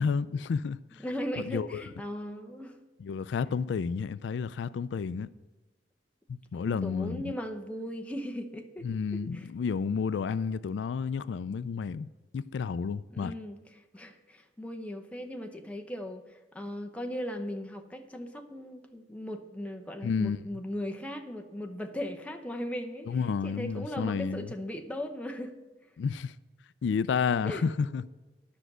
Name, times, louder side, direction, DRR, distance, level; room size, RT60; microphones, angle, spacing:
voice 1, 0.0-1.0 1.4-1.8 3.0-5.3 6.3-7.3 8.8-12.1 12.3-13.3 20.0-20.4 23.0-24.5 26.0-26.3 26.8-28.0, left 5 dB, 90° left, 0.3 m, -31 dB
voice 2, 1.0-2.8 6.5-8.9 9.1-9.5 13.1-23.2 23.4-25.6 27.4-27.6, equal, 10° left, 0.8 m, -38 dB
10.0 x 6.1 x 7.9 m
head